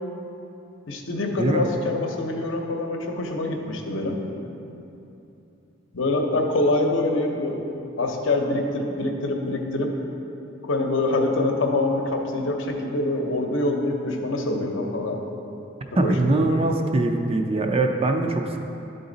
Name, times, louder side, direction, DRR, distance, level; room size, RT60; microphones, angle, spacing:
voice 1, 0.9-4.2 5.9-7.6 8.0-10.0 10.6-15.2 16.0-16.4, left 2 dB, 70° left, 2 dB, 0.8 m, -25 dB
voice 2, 16.0-18.6, right 2 dB, 30° right, 4 dB, 0.4 m, -22 dB
11.5 x 3.9 x 3.9 m, 2.9 s
head